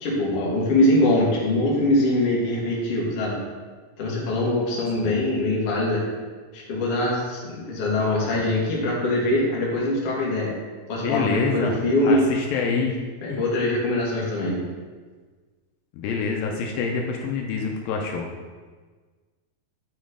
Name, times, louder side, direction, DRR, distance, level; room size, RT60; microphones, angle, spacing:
voice 1, 0.0-3.4 4.0-6.0 6.5-10.5 10.9-12.3 13.2-14.6, left 1 dB, 50° left, -5 dB, 2.1 m, -23 dB
voice 2, 11.0-11.8 12.0-12.9 13.3-13.4 15.9-18.3, left 5 dB, 85° left, 1 dB, 2.4 m, -26 dB
9.2 x 3.1 x 5.0 m, 1.4 s
omnidirectional pair, 4.2 m